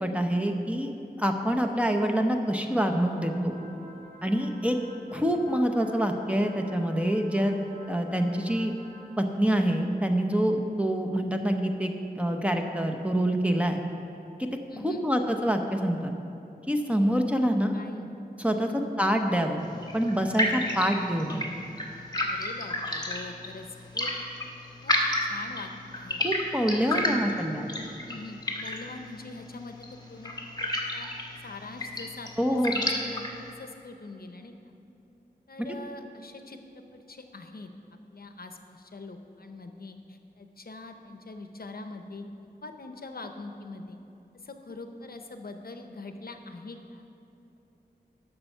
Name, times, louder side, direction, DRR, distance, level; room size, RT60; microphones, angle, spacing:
voice 1, 0.0-0.9 1.2-3.6 4.2-4.7 5.1-7.5 7.9-8.7 9.2-13.8 14.4-14.5 14.8-16.1 16.7-17.7 18.4-18.7 19.0-19.6 19.9-21.4 26.2-27.6 32.4-32.7, equal, 10° right, 4 dB, 0.8 m, -26 dB
sound 1, 2.9-9.1, right 1 dB, 65° right, 2.2 m, -49 dB
voice 2, 14.7-15.1 17.7-18.1 18.6-18.8 22.3-24.1 24.8-25.0 25.2-26.2 26.8-27.5 28.1-29.8 30.1-30.3 30.6-31.1 31.4-34.7 35.5-36.6 36.9-37.7 38.1-44.0 44.4-47.1, left 3 dB, 65° left, 6 dB, 0.7 m, -43 dB
sound 2, 19.6-33.5, left 1 dB, 25° left, 1.4 m, -32 dB
11.5 x 6.9 x 5.5 m, 2.8 s
wide cardioid pair, 65°, 17 cm